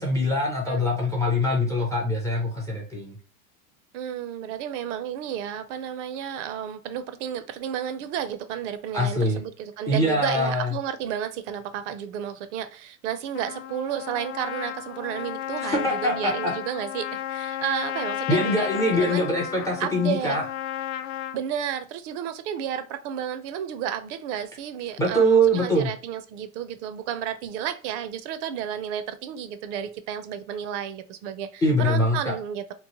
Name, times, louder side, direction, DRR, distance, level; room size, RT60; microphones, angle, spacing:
voice 1, 0.0-3.2 8.9-9.4 9.9-10.8 15.6-16.5 18.3-20.4 25.0-25.9 31.6-32.3, equal, 10° left, 0.3 m, -23 dB
voice 2, 3.9-19.3 19.8-20.4 21.3-32.7, right 9 dB, 60° right, 0.5 m, -32 dB
Trumpet, 13.3-21.4, left 12 dB, 70° left, 0.5 m, -33 dB
2.9 x 2.0 x 2.8 m
supercardioid pair, 120°, 42 cm